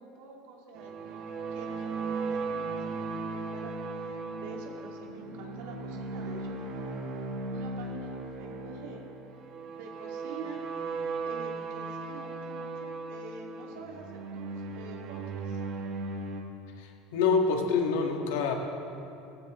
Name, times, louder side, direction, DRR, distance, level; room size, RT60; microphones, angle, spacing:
voice 1, 0.0-7.0 7.5-9.1 9.7-10.6 11.2-15.6, right 4 dB, 80° right, 0 dB, 2.2 m, -47 dB
sound 1, 0.7-16.4, right 3 dB, 50° right, 1.5 m, -37 dB
voice 2, 16.8-18.5, left 5 dB, 85° left, 2 dB, 1.6 m, -26 dB
16.5 x 14.5 x 3.1 m, 2.8 s
supercardioid pair, 140°, 0 cm